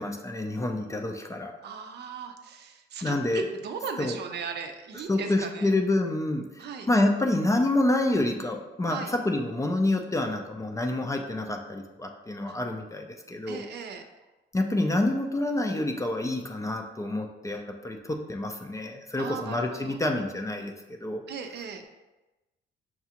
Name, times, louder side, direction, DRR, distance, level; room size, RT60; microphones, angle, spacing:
voice 1, 0.0-1.5 3.0-3.5 4.0-4.2 5.1-13.6 14.5-20.7 21.0-21.2, left 2 dB, 15° left, 3 dB, 0.4 m, -28 dB
voice 2, 1.6-5.7 6.6-6.9 8.9-9.1 12.4-12.6 13.5-14.0 19.2-20.0 21.3-21.8, right 6 dB, 60° right, 5 dB, 0.5 m, -37 dB
5.8 x 2.4 x 2.8 m, 1.1 s
cardioid pair, 90°, 20 cm